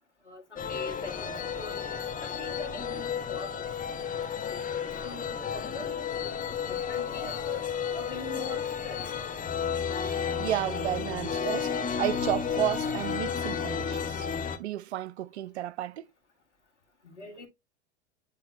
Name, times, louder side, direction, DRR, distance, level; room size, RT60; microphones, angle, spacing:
voice 1, 0.3-3.7 5.0-9.1 17.0-17.5, left 3 dB, 90° left, 2.0 m, -43 dB
sound 1, 0.6-14.6, left 7 dB, 25° left, 1.3 m, -32 dB
voice 2, 10.4-14.3 14.6-16.0, right 13 dB, 70° right, 0.5 m, -32 dB
9.3 x 3.6 x 2.8 m
figure-of-eight pair, 80°, 34 cm